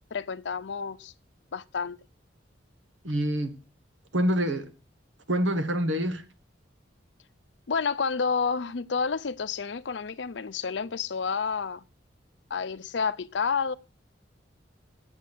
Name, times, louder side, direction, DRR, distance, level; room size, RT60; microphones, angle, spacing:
voice 1, 0.1-1.1 1.5-2.0 7.7-11.8 12.5-13.7, left 5 dB, 65° left, 0.6 m, -29 dB
voice 2, 3.0-3.6 4.1-4.7 5.3-6.2, equal, 90° right, 1.5 m, -26 dB
8.5 x 8.0 x 8.2 m
head